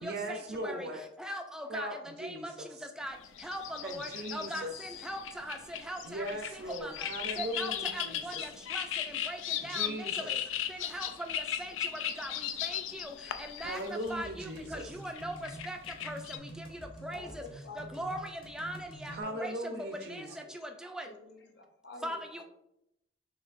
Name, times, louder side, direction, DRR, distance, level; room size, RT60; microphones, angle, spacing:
voice 1, 0.0-1.0 1.7-2.9 3.8-4.7 6.0-8.5 9.6-10.4 13.6-14.9 19.1-20.4, right 1 dB, 55° right, 3 dB, 0.5 m, -39 dB
voice 2, 1.2-1.9 2.2-2.5 3.0-3.1 3.4-4.6 5.0-5.6 5.9-6.2 6.8-6.9 7.4-8.3 8.7-8.8 9.3-9.4 9.6-9.9 10.7-11.1 11.3-11.7 12.2-12.3 12.6-13.1 13.6-13.8 14.1-14.5 14.7-15.3 15.7-15.8 16.1-16.2 17.0-17.3 17.9-18.2 18.5-18.8 19.0-19.1 19.4-19.5 19.8-20.2 20.9-21.1 22.0-22.4, right 1 dB, 5° right, 4 dB, 0.3 m, -39 dB
sound 1, 3.0-16.4, left 10 dB, 90° left, 0.4 m, -37 dB
sound 2, 14.1-19.2, right 1 dB, 25° left, 0.8 m, -48 dB
voice 3, 17.1-18.1 19.4-19.8 20.3-20.6 21.0-22.2, left 2 dB, 60° left, 3 dB, 0.7 m, -49 dB
6.4 x 2.8 x 2.5 m, 0.81 s
head